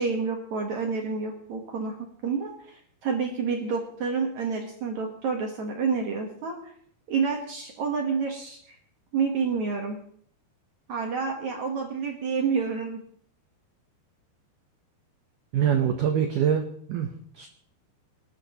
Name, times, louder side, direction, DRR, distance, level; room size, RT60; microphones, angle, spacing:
voice 1, 0.0-2.0 2.2-6.7 7.1-8.8 9.1-10.0 10.9-13.0, right 5 dB, 65° right, 2 dB, 1.8 m, -29 dB
voice 2, 15.5-17.5, right 8 dB, 90° right, 5 dB, 1.8 m, -25 dB
26.0 x 12.0 x 3.0 m, 0.63 s
omnidirectional pair, 5.3 m